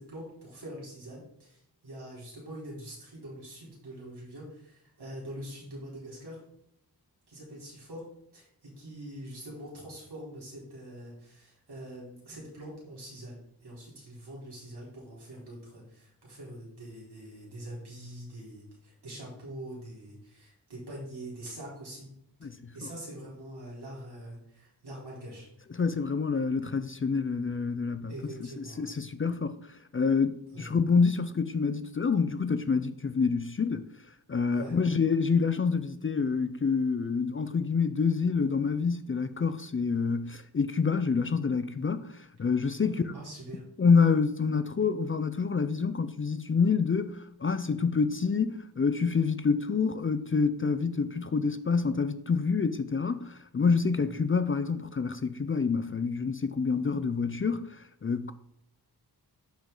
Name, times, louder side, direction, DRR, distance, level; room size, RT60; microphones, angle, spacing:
voice 1, 0.0-6.4 7.3-8.0 8.3-22.1 22.4-22.5 22.7-25.5 28.1-28.9 30.5-30.7 34.5-34.8 42.8-43.6 54.0-54.2, right 1 dB, 75° right, 4.0 m, -44 dB
voice 2, 22.4-22.9 25.7-28.1 28.6-33.9 34.3-43.1 43.8-58.3, left 5 dB, 30° left, 0.5 m, -27 dB
11.5 x 5.1 x 3.9 m
wide cardioid pair, 115°, 40 cm